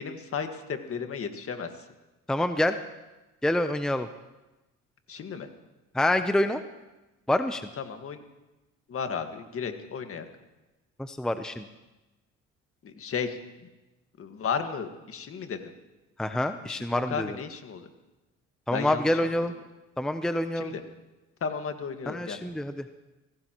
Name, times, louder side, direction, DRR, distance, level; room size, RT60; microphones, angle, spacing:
voice 1, 0.0-1.7 5.1-5.5 7.8-8.2 8.9-10.2 12.8-13.4 14.2-15.7 16.6-17.9 18.7-19.3 20.6-20.8 21.4-22.4, left 6 dB, 45° left, 6 dB, 1.8 m, -34 dB
voice 2, 2.3-2.8 3.4-4.1 5.9-6.6 7.3-7.7 11.0-11.7 16.2-17.4 18.7-19.5 20.0-20.8 22.1-22.9, left 1 dB, ahead, 8 dB, 0.7 m, -27 dB
24.0 x 17.5 x 3.1 m, 1.1 s
cardioid pair, 90°, 30 cm